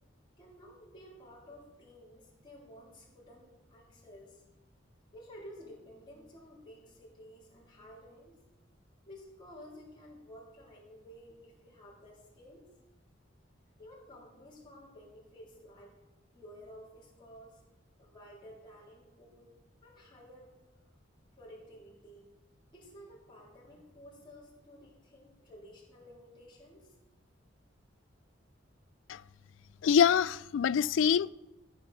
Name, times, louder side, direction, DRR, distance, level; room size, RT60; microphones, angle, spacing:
voice 1, 0.4-4.4 5.1-8.4 9.1-12.7 13.8-16.0 16.3-17.6 18.0-19.5 19.8-20.5 21.4-22.3 22.7-26.9, equal, 25° left, 3.7 m, -53 dB
voice 2, 29.8-31.3, left 7 dB, 75° left, 0.3 m, -25 dB
14.5 x 7.2 x 6.2 m
head